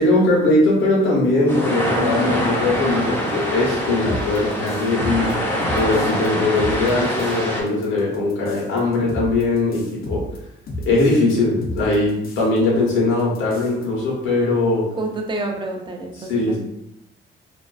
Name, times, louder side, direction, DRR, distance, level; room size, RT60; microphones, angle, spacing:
voice 1, 0.0-5.3 5.7-10.3 10.9-14.9 16.2-16.6, left 2 dB, 80° left, -4 dB, 0.9 m, -20 dB
sound 1, 1.5-7.6, equal, 10° left, 0.7 m, -24 dB
sound 2, 4.0-6.3 6.6-7.4 7.7-11.3 11.6-12.6 12.9-13.0 13.2-13.9, equal, 50° left, 0.5 m, -33 dB
voice 2, 15.0-16.6, right 2 dB, 25° right, 2 dB, 0.5 m, -28 dB
2.4 x 2.2 x 2.3 m, 0.81 s
cardioid pair, 90°, 20 cm